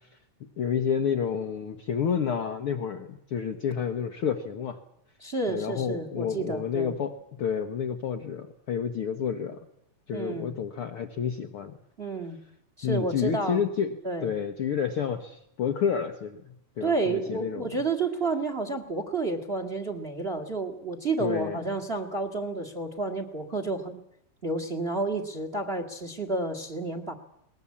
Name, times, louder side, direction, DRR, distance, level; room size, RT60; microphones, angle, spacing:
voice 1, 0.4-4.8 5.5-9.6 10.1-11.8 12.8-17.7 21.2-21.6, left 7 dB, 60° left, 5 dB, 1.5 m, -30 dB
voice 2, 5.2-6.9 10.1-10.5 12.0-12.4 12.8-13.6 14.0-14.3 16.8-24.0 24.4-27.1, right 3 dB, 25° right, 9 dB, 1.6 m, -30 dB
22.0 x 20.0 x 8.5 m, 0.77 s
omnidirectional pair, 3.7 m